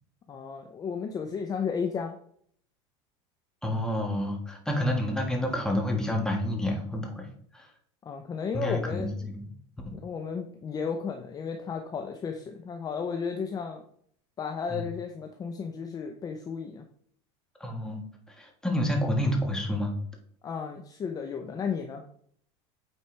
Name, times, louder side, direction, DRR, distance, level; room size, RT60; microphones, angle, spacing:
voice 1, 0.3-2.2 8.0-9.3 9.9-13.8 14.4-16.8 20.4-22.0, left 6 dB, 25° left, 5 dB, 0.7 m, -33 dB
voice 2, 3.6-7.2 7.5-7.7 8.5-9.4 9.9-10.0 14.7-14.9 17.6-18.0 18.4-19.9, left 1 dB, 5° left, 1 dB, 1.6 m, -29 dB
8.7 x 4.5 x 3.3 m, 0.63 s
supercardioid pair, 130°, 15 cm